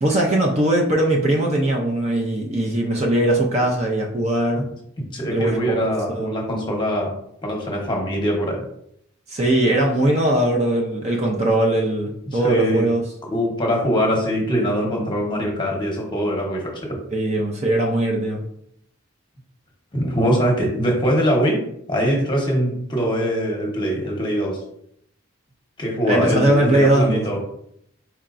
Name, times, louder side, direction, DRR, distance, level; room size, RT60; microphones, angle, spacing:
voice 1, 0.0-4.7 5.3-6.4 9.3-13.0 17.1-18.4 26.0-27.3, right 1 dB, 30° right, 0 dB, 0.5 m, -20 dB
voice 2, 5.0-7.1 7.4-8.6 12.3-12.9 13.3-16.7 19.9-21.6 21.9-24.6 25.8-27.4, equal, 20° left, 0 dB, 1.0 m, -22 dB
4.6 x 4.4 x 2.5 m, 0.72 s
head